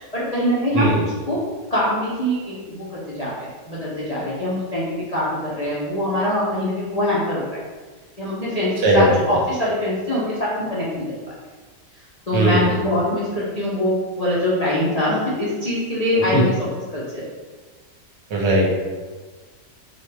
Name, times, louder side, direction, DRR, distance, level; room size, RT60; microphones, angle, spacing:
voice 1, 0.0-1.4 1.7-7.5 8.2-11.1 12.3-17.2, left 1 dB, 65° left, -8 dB, 0.3 m, -23 dB
voice 2, 8.8-9.2 12.3-12.7 16.3-16.4 18.3-18.8, right 1 dB, 80° right, -2 dB, 1.5 m, -18 dB
4.5 x 2.2 x 3.3 m, 1.4 s
omnidirectional pair, 1.9 m